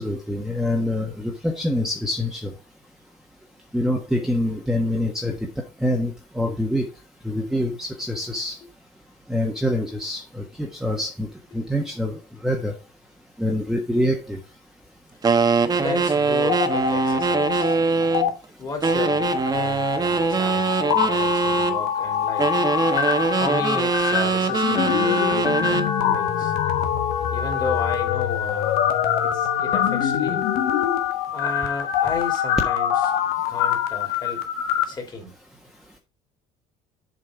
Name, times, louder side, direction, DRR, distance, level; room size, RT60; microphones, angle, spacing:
voice 1, 0.0-2.5 3.7-6.9 7.2-8.6 9.3-12.7 13.4-14.4, left 1 dB, 5° right, 1.4 m, -25 dB
sound 1, 15.2-18.3 18.8-21.8 22.4-25.9, right 4 dB, 25° right, 1.0 m, -22 dB
voice 2, 15.8-17.8 18.6-22.6 23.3-26.5 27.3-28.8 29.2-30.4 31.3-32.9 33.5-34.4 34.9-35.3, left 3 dB, 25° left, 3.1 m, -33 dB
sound 2, 16.3-17.7 18.0-18.3 18.8-34.8, left 9 dB, 80° left, 1.4 m, -24 dB
7.7 x 5.2 x 5.1 m
cardioid pair, 105°, 16 cm